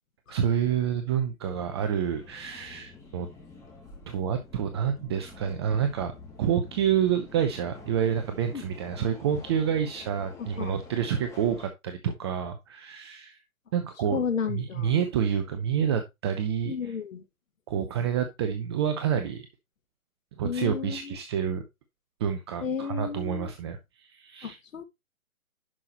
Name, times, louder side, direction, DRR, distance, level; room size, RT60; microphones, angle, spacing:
voice 1, 0.3-3.3 4.1-6.1 6.4-13.4 13.7-16.9 17.7-19.5 20.4-21.6 22.2-24.6, right 8 dB, 20° right, 0.7 m, -28 dB
Subway metro underground, 1.4-11.7, left 4 dB, 5° left, 2.5 m, -48 dB
voice 2, 10.4-10.7 14.1-14.9 16.7-17.2 20.4-21.2 22.6-23.5 24.4-24.8, left 6 dB, 65° left, 1.8 m, -32 dB
11.0 x 5.7 x 3.0 m
hypercardioid pair, 140°, 42 cm